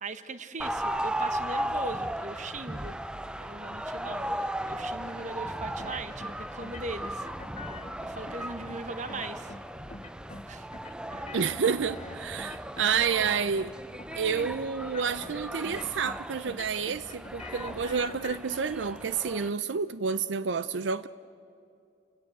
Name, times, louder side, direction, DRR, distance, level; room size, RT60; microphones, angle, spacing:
voice 1, 0.0-3.0 3.4-7.3 8.0-9.5 10.5-10.7 11.1-11.2, right 3 dB, 40° right, 1.1 m, -39 dB
sound 1, 0.6-19.5, right 1 dB, 5° right, 0.5 m, -36 dB
sound 2, 5.8-6.3 6.6-7.9 8.3-8.8 9.1-9.6 9.9-10.5 10.7-12.9 13.2-13.7 14.0-14.5 14.8-15.3 15.6-16.2 16.4-18.6, left 4 dB, 35° left, 0.9 m, -45 dB
voice 2, 11.3-13.7 14.2-21.1, right 6 dB, 80° right, 0.5 m, -29 dB
29.5 x 17.5 x 9.1 m
head